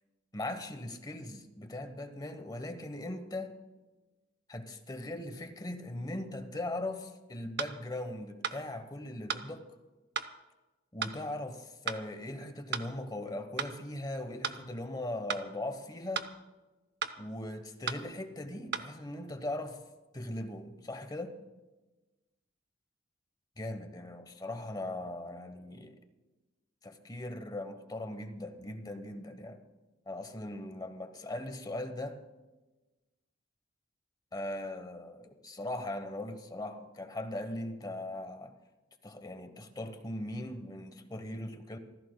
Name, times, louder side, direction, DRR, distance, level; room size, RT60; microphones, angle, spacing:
voice 1, 0.3-3.5 4.5-9.6 10.9-16.3 17.2-19.8 20.1-21.4 23.6-26.0 26.8-29.6 30.1-32.2 34.3-38.5 39.0-41.8, left 1 dB, 20° left, 8 dB, 1.1 m, -39 dB
sound 1, 7.6-7.8 8.4-8.6 9.3-9.5 10.2-10.3 11.0-11.2 11.9-12.0 12.7-12.9 13.6-13.7 14.4-14.6 15.3-15.5 16.2-16.3 17.0-17.2 17.9-18.0 18.7-18.9, right 6 dB, 60° right, 0.7 m, -34 dB
27.0 x 15.0 x 2.3 m, 1.1 s
head